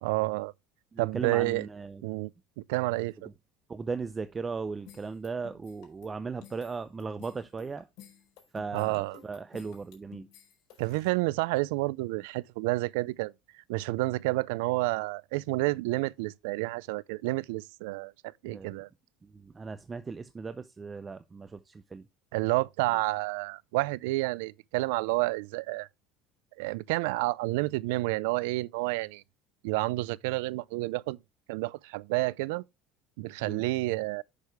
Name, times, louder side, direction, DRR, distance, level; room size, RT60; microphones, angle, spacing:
voice 1, 0.0-0.5 1.0-1.7 2.0-2.3 2.6-3.3 8.7-9.2 10.8-18.9 22.3-25.9 26.6-29.2 29.6-31.2 31.5-32.6 33.2-34.2, right 21 dB, 85° right, 0.4 m, -30 dB
voice 2, 0.9-2.0 3.7-7.9 8.5-10.3 18.4-18.8 19.2-22.1 33.4-33.6, right 4 dB, 20° right, 0.6 m, -37 dB
sound 1, 4.9-11.1, left 9 dB, 60° left, 4.3 m, -53 dB
8.2 x 6.3 x 3.4 m
supercardioid pair, 130°, 0 cm